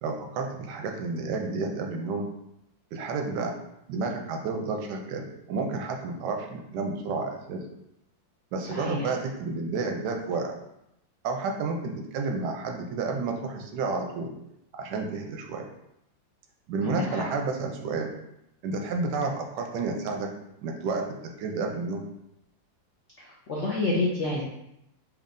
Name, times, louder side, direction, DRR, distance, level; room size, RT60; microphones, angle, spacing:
voice 1, 0.0-2.3 2.9-3.5 3.9-7.6 8.5-10.5 11.2-14.3 14.7-15.6 16.7-18.1 18.6-20.3 20.6-22.0, right 3 dB, 70° right, 3 dB, 1.1 m, -31 dB
voice 2, 8.7-9.1 16.8-17.2 23.2-24.4, left 2 dB, 75° left, -4 dB, 0.6 m, -29 dB
4.5 x 3.0 x 2.5 m, 0.82 s
omnidirectional pair, 2.1 m